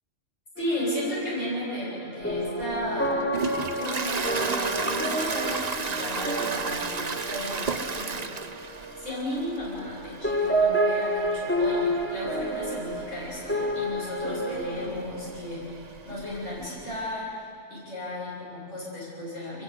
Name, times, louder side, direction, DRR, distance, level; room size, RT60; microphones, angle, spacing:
voice 1, 0.6-3.2 3.7-8.3 9.0-17.4 17.7-19.6, left 1 dB, 90° left, -7 dB, 8.6 m, -34 dB
sound 1, 0.6-10.0 10.2-14.9, right 1 dB, 10° left, 3.8 m, -30 dB
Toilet flush, 2.3-17.0, right 4 dB, 35° right, 1.0 m, -35 dB
27.0 x 23.0 x 8.4 m, 2.4 s
omnidirectional pair, 1.2 m